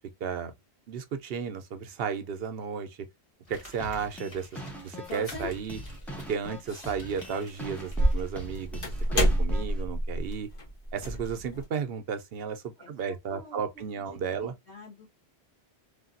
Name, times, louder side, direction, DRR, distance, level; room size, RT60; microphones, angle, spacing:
voice 1, 0.2-0.5 0.9-3.0 3.5-4.5 4.8-5.8 6.3-8.8 9.1-10.5 10.9-14.5, right 6 dB, 65° right, 0.8 m, -33 dB
Crumpling crinkling, 3.4-9.2 9.5-9.6, left 1 dB, 30° left, 1.4 m, -52 dB
sound 1, 3.8-9.8, equal, ahead, 0.6 m, -42 dB
sound 2, 5.0-6.1 6.7-7.1 7.5-11.6, equal, 55° left, 1.2 m, -29 dB
voice 2, 12.8-15.2, left 2 dB, 80° left, 1.6 m, -50 dB
3.3 x 2.3 x 2.4 m
omnidirectional pair, 1.1 m